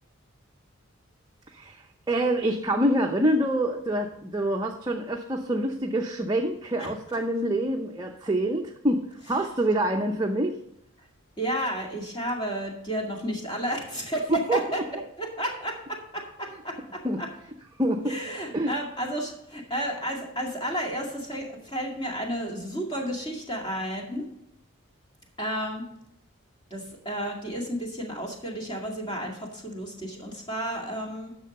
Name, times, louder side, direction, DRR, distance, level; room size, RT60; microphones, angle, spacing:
voice 1, 1.5-9.0 9.3-10.6 14.3-14.6 17.0-17.2 17.8-18.2 18.5-18.7, right 1 dB, 20° right, 1 dB, 0.6 m, -26 dB
voice 2, 11.4-14.8 15.2-17.3 18.1-24.2 25.4-25.8 26.7-31.3, equal, 20° left, 0 dB, 2.2 m, -32 dB
10.5 x 6.7 x 5.3 m, 0.80 s
head